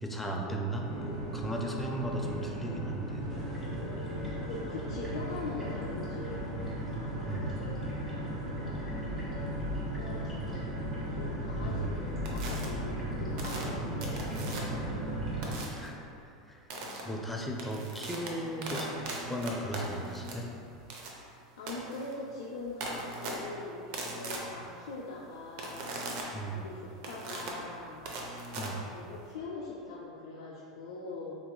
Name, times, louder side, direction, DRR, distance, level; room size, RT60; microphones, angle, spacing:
voice 1, 0.0-3.2 7.3-7.5 11.6-11.9 15.7-16.0 16.4-16.7 17.0-18.9 19.3-20.5 26.3-26.6 28.6-28.8, right 1 dB, 5° left, 0 dB, 0.4 m, -36 dB
sound 1, 0.8-15.6, equal, 90° right, 1.5 m, -37 dB
sound 2, 3.3-15.5, right 1 dB, 10° right, 1.1 m, -42 dB
voice 2, 3.7-4.2 4.4-6.4 6.8-8.0 8.6-9.1 10.0-10.9 11.2-12.0 12.3-14.7 16.7-17.2 21.6-26.1 26.5-28.0 28.5-31.4, left 3 dB, 75° left, -4 dB, 0.4 m, -43 dB
sound 3, 12.3-12.7 13.4-14.9 15.4-15.9 16.7-17.0 17.4-29.3, right 2 dB, 60° right, 0.6 m, -40 dB
3.8 x 2.9 x 2.2 m, 2.7 s
hypercardioid pair, 95°, 2 cm